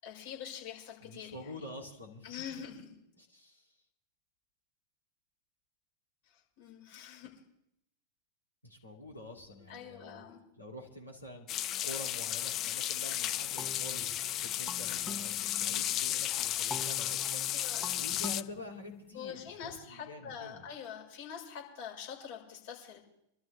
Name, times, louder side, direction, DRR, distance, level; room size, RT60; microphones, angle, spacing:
voice 1, 0.0-1.5 2.2-2.9 6.3-7.3 9.7-10.4 17.5-17.9 19.1-23.0, left 8 dB, 55° left, -2 dB, 6.1 m, -45 dB
voice 2, 1.0-2.6 3.1-3.7 6.9-7.0 7.2-7.3 8.6-10.2 10.6-11.5 11.8-17.5 17.9-20.7, left 1 dB, 85° left, -1 dB, 3.1 m, -47 dB
sound 1, 11.5-18.4, left 12 dB, 35° left, 0.5 m, -34 dB
sound 2, 13.6-16.1 16.7-19.5, left 2 dB, 10° left, 1.2 m, -46 dB
26.0 x 12.5 x 3.6 m, 0.80 s
figure-of-eight pair, 90°, 0 cm